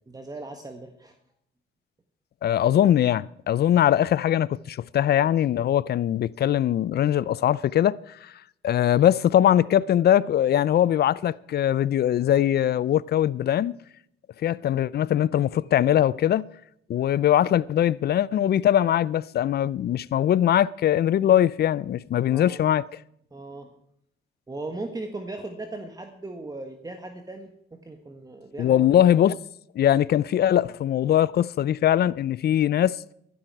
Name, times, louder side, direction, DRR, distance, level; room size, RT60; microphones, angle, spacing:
voice 1, 0.1-1.1 22.3-22.6 23.3-23.7 24.5-29.0, right 2 dB, 20° right, 1.5 m, -38 dB
voice 2, 2.4-8.3 8.6-13.8 14.4-16.5 16.9-23.0 28.6-29.4 29.8-33.0, left 11 dB, 55° left, 0.5 m, -21 dB
14.5 x 12.0 x 4.7 m
cardioid pair, 90°, 20 cm